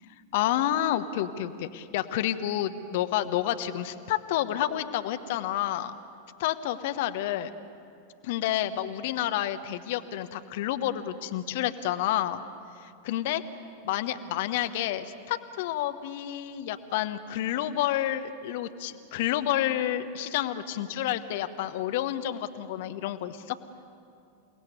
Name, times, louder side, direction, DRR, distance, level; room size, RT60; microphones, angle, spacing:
voice 1, 0.3-5.9 6.4-7.5 8.2-12.4 12.8-13.4 13.8-23.6, left 12 dB, 50° left, 10 dB, 1.1 m, -29 dB
29.0 x 18.5 x 9.5 m, 2.5 s
figure-of-eight pair, 90°, 0 cm